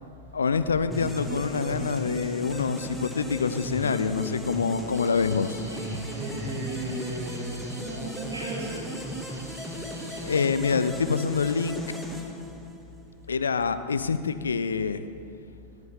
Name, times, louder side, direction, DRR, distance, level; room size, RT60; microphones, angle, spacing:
voice 1, 0.3-5.6 10.2-11.8 13.3-15.0, left 5 dB, 70° left, 12 dB, 0.5 m, -26 dB
sound 1, 0.9-13.0, equal, ahead, 1.4 m, -36 dB
sound 2, 4.9-10.5, right 1 dB, 85° right, 1.9 m, -44 dB
voice 2, 6.1-8.8, right 2 dB, 60° right, -4 dB, 3.1 m, -36 dB
17.5 x 9.1 x 3.7 m, 2.5 s
figure-of-eight pair, 90°, 0 cm